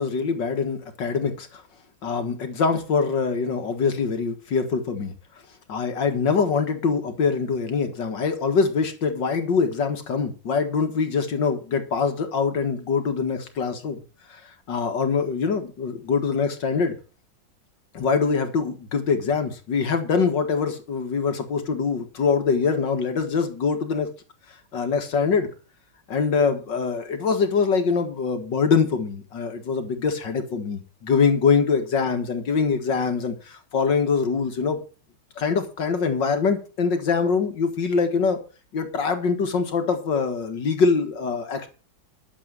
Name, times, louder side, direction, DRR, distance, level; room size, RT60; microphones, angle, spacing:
voice 1, 0.0-1.6 2.0-5.1 5.7-14.0 14.3-17.0 17.9-24.1 24.7-25.5 26.1-34.8 35.4-38.4 38.7-41.7, left 5 dB, 60° left, 7 dB, 2.2 m, -24 dB
11.5 x 7.4 x 7.5 m, 0.35 s
omnidirectional pair, 2.2 m